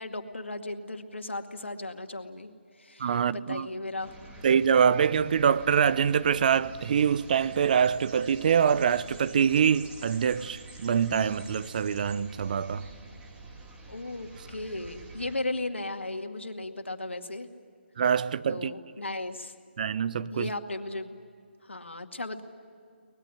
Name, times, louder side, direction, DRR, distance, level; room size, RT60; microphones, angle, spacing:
voice 1, 0.0-2.5 2.8-4.1 13.9-17.5 18.5-19.5 20.3-21.2 21.6-22.4, left 2 dB, 85° left, 2.1 m, -36 dB
voice 2, 3.0-3.7 4.4-12.9 18.0-18.7 19.8-20.5, right 7 dB, 45° right, 0.7 m, -24 dB
sound 1, 4.0-15.4, right 2 dB, 15° right, 2.8 m, -47 dB
24.5 x 20.0 x 9.8 m
figure-of-eight pair, 145°, 6 cm